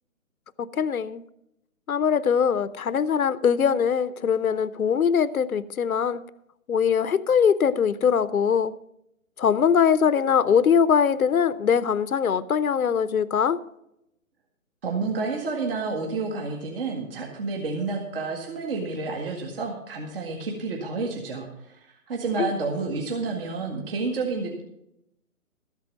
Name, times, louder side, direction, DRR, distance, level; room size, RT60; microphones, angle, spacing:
voice 1, 0.7-1.2 1.9-6.2 6.7-8.7 9.4-13.6 22.4-22.5, left 7 dB, 80° left, 0.8 m, -22 dB
voice 2, 14.8-24.6, right 3 dB, 40° right, 2.0 m, -30 dB
13.5 x 8.3 x 5.2 m
hypercardioid pair, 155°, 42 cm